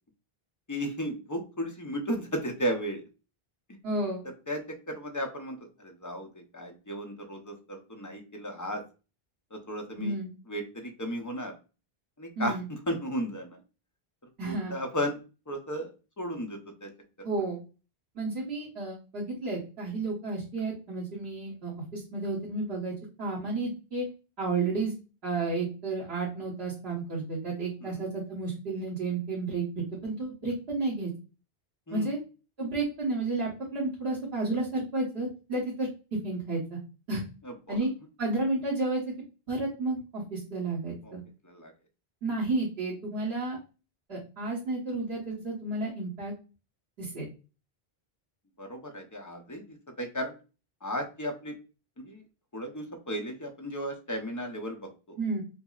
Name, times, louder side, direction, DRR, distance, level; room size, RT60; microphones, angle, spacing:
voice 1, 0.7-3.0 4.5-8.8 9.5-10.2 10.5-11.5 12.2-13.6 14.4-15.2 15.5-15.9 16.2-16.9 27.8-28.0 31.9-32.1 37.4-37.8 41.0-41.1 41.4-41.7 48.6-50.4 50.8-51.5 52.0-52.2 52.5-55.2, equal, 25° left, 3 dB, 0.5 m, -35 dB
voice 2, 3.8-4.2 10.0-10.3 12.4-12.6 14.4-14.7 17.2-17.6 18.1-22.9 23.2-24.0 24.4-24.9 25.2-31.1 31.9-32.2 32.6-35.9 36.2-36.8 37.1-37.2 37.7-37.9 38.2-39.0 39.5-41.2 42.2-43.6 44.1-46.3 47.0-47.3 55.2-55.4, right 3 dB, 85° right, -7 dB, 1.5 m, -31 dB
5.5 x 2.0 x 2.3 m, 0.32 s
omnidirectional pair, 1.0 m